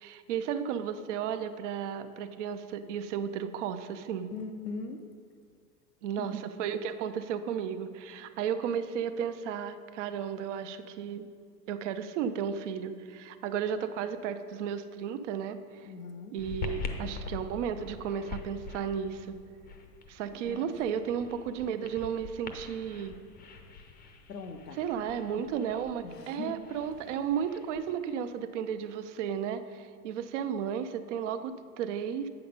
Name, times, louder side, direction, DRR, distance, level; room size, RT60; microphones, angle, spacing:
voice 1, 0.0-4.3 6.0-11.3 11.7-15.9 16.3-19.4 20.1-23.2 24.8-32.3, right 8 dB, 50° right, 10 dB, 0.6 m, -34 dB
voice 2, 4.3-5.0 6.2-6.4 15.8-16.4 20.3-20.7 24.3-24.8 26.0-26.6 27.1-27.2, left 4 dB, 80° left, 5 dB, 0.7 m, -41 dB
sound 1, 16.4-27.9, left 4 dB, 20° left, 0.6 m, -44 dB
8.4 x 5.8 x 5.2 m, 2.1 s
figure-of-eight pair, 95°, 48 cm